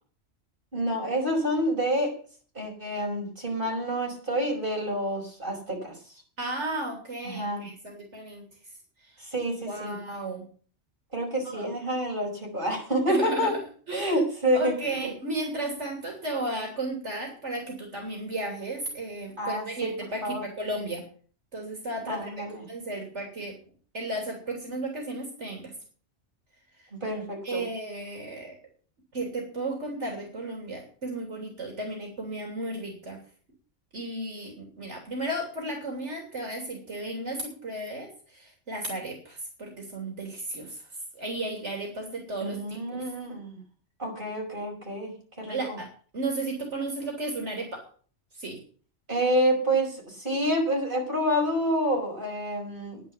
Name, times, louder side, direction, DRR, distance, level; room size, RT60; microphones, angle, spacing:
voice 1, 0.7-2.1 2.5-6.1 7.2-7.7 9.2-10.0 11.1-13.6 13.9-15.1 19.4-19.9 20.2-20.5 22.1-22.6 26.9-27.7 42.4-43.6 44.0-45.8 49.1-53.0, equal, 45° right, -1 dB, 5.5 m, -28 dB
voice 2, 6.4-8.4 9.0-9.1 9.7-10.4 11.4-11.7 13.1-13.6 13.9-14.2 14.5-21.0 21.5-22.3 22.7-23.5 23.9-25.7 26.8-26.9 27.4-28.5 29.1-33.2 33.9-40.8 41.1-43.0 45.5-45.9 46.1-47.8 48.3-48.6, right 2 dB, 80° right, 1 dB, 3.4 m, -34 dB
10.5 x 10.0 x 7.1 m, 0.43 s
omnidirectional pair, 1.2 m